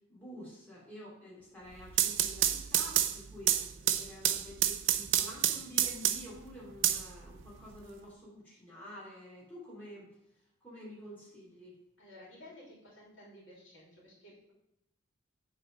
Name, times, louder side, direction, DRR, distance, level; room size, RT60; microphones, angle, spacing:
voice 1, 0.1-3.5 3.8-10.1 10.6-11.7, equal, 10° left, -7 dB, 2.7 m, -49 dB
sound 1, 1.7-6.4 6.8-7.8, right 11 dB, 60° right, 0.5 m, -29 dB
voice 2, 12.0-14.5, left 1 dB, 65° left, -5 dB, 2.9 m, -54 dB
8.1 x 4.2 x 5.2 m, 0.86 s
head